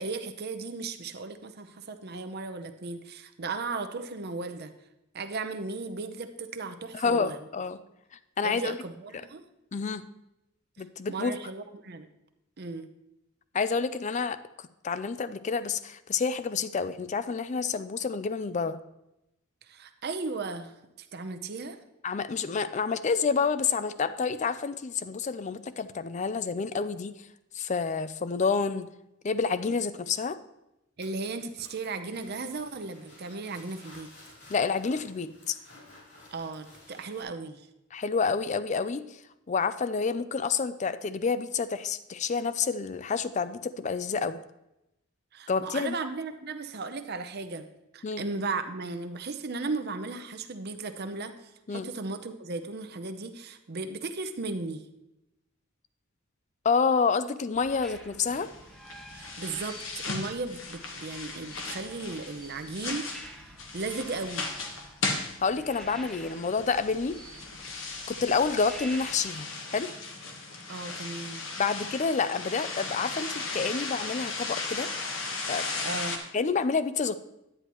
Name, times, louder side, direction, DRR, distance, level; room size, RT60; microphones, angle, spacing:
voice 1, 0.0-4.7 5.1-7.4 8.4-9.4 11.1-12.1 12.6-12.9 19.7-21.8 31.0-34.1 36.3-37.7 45.3-47.7 47.9-54.8 59.1-63.1 63.7-64.5 70.7-71.4 75.8-76.2, right 3 dB, 50° right, 8 dB, 0.7 m, -36 dB
voice 2, 6.9-7.8 8.4-8.8 9.7-10.0 10.8-11.3 13.5-14.4 14.8-18.8 22.0-27.1 27.5-28.9 29.2-30.4 34.5-35.6 37.9-39.2 39.5-44.4 45.5-46.0 48.0-48.2 51.7-51.9 56.6-58.5 65.4-67.2 68.1-69.9 71.6-74.9 75.5-75.7 76.3-77.2, left 5 dB, 35° left, 13 dB, 0.4 m, -28 dB
sound 1, 31.0-37.2, left 2 dB, 55° left, 3.4 m, -54 dB
sound 2, 57.5-69.2, equal, ahead, 0.7 m, -49 dB
sound 3, 58.2-76.2, left 3 dB, 75° left, 1.3 m, -37 dB
10.0 x 9.6 x 3.0 m, 0.89 s
head